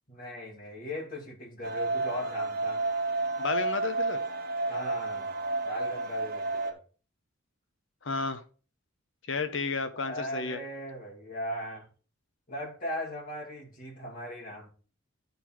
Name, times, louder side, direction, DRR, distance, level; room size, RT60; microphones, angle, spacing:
voice 1, 0.1-2.8 4.7-5.3 5.6-6.8 10.0-11.9 12.5-14.7, equal, 40° left, 2.5 m, -38 dB
sound 1, 1.6-6.7, right 3 dB, 45° right, 1.0 m, -31 dB
voice 2, 3.4-4.2 8.0-8.4 9.2-10.6, left 4 dB, 60° left, 0.9 m, -32 dB
10.0 x 4.1 x 4.5 m
head